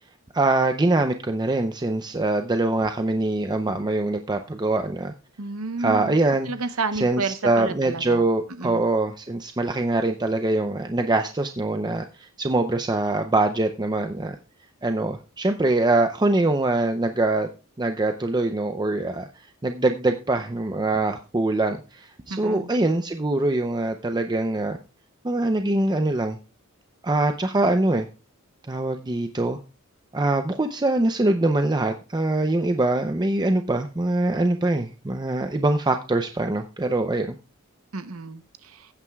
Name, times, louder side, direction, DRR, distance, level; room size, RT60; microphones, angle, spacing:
voice 1, 0.3-5.1 5.8-6.5 6.9-14.4 14.8-17.5 17.8-19.3 19.6-24.8 25.2-26.4 27.0-28.1 28.7-29.6 30.1-37.3, right 2 dB, 20° right, 6 dB, 0.6 m, -23 dB
voice 2, 5.4-6.1 6.5-8.2 8.6-8.9 22.3-22.7 37.9-38.9, right 3 dB, 70° right, 10 dB, 0.9 m, -31 dB
15.5 x 8.9 x 2.3 m, 0.32 s
head